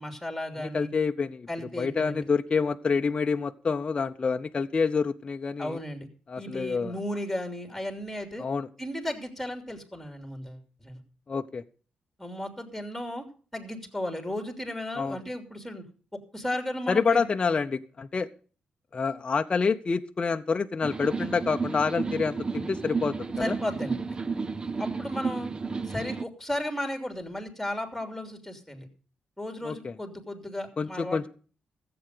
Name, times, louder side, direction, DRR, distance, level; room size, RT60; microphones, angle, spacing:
voice 1, 0.0-0.9 1.5-2.3 5.6-6.1 6.4-8.4 8.8-11.0 12.2-13.2 13.5-15.8 16.1-17.2 23.4-24.2 24.8-25.5 25.8-28.9 29.4-31.3, left 1 dB, ahead, 5 dB, 3.2 m, -35 dB
voice 2, 0.6-1.5 1.8-5.8 6.3-6.9 8.4-8.7 11.3-11.6 15.0-15.2 16.9-18.3 18.9-23.1 23.5-23.6 29.6-29.9 30.8-31.3, left 5 dB, 35° left, 6 dB, 0.7 m, -27 dB
sound 1, 20.8-26.2, right 4 dB, 30° right, 0.6 m, -32 dB
14.5 x 7.9 x 6.7 m, 0.40 s
cardioid pair, 85°, 3 cm